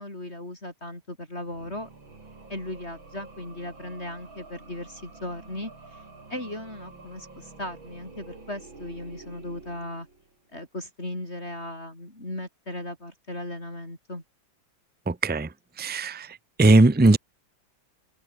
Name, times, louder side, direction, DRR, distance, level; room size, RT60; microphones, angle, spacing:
voice 1, 0.0-1.9 2.5-6.0 6.3-10.1 10.5-14.2, left 1 dB, 30° left, 7.1 m, -37 dB
sound 1, 1.4-10.5, right 3 dB, 85° right, 6.1 m, -48 dB
voice 2, 15.1-15.5 15.8-16.3 16.6-17.2, right 2 dB, 10° right, 0.4 m, -18 dB
omnidirectional pair, 2.1 m